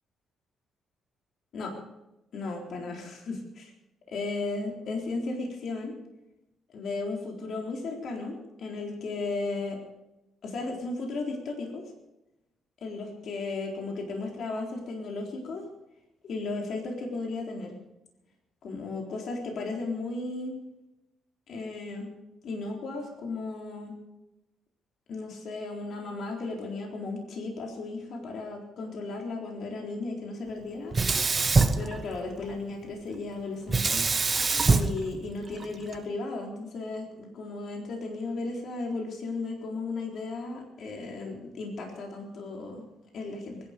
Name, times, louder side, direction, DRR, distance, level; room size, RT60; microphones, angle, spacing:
voice 1, 2.3-3.7 4.1-5.9 6.7-9.8 10.4-11.8 12.8-15.6 16.3-17.8 18.6-20.6 21.5-22.1 22.4-24.0 25.1-31.0 31.7-34.0 34.7-42.8 43.1-43.6, left 3 dB, 65° left, 1 dB, 3.9 m, -35 dB
Sink (filling or washing), 30.9-32.6 33.7-36.0, right 4 dB, 30° right, 1.4 m, -25 dB
23.0 x 11.5 x 5.3 m, 0.93 s
cardioid pair, 90°, 0 cm